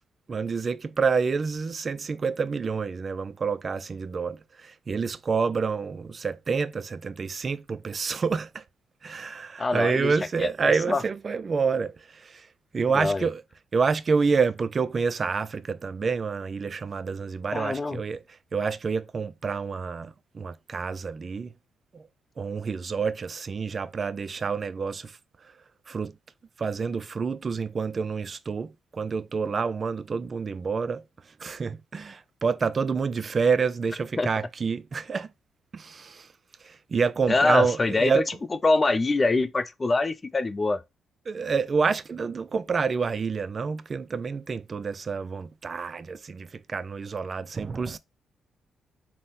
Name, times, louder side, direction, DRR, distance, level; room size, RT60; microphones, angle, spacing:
voice 1, 0.3-8.6 9.0-11.9 12.2-12.4 12.7-13.4 13.7-18.2 18.5-21.5 21.9-22.0 22.4-25.1 25.9-26.1 26.6-31.0 31.4-35.3 35.7-36.3 36.7-38.3 41.3-48.0, right 5 dB, 45° right, 0.3 m, -28 dB
voice 2, 9.6-11.0 12.9-13.3 17.5-18.0 34.2-34.3 37.3-38.2 38.6-40.8, left 3 dB, 35° left, 0.4 m, -24 dB
3.6 x 2.1 x 4.1 m
hypercardioid pair, 50°, 0 cm